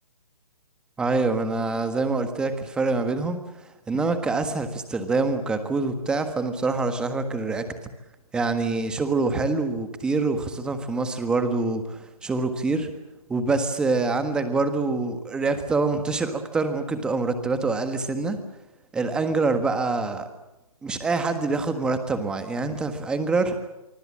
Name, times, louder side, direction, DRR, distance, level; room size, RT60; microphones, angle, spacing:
voice 1, 1.0-3.4 3.9-7.6 8.3-12.9 13.3-18.4 18.9-20.3 20.8-23.6, right 3 dB, 5° right, 8 dB, 1.5 m, -25 dB
24.5 x 23.5 x 7.5 m, 0.97 s
hypercardioid pair, 165°, 19 cm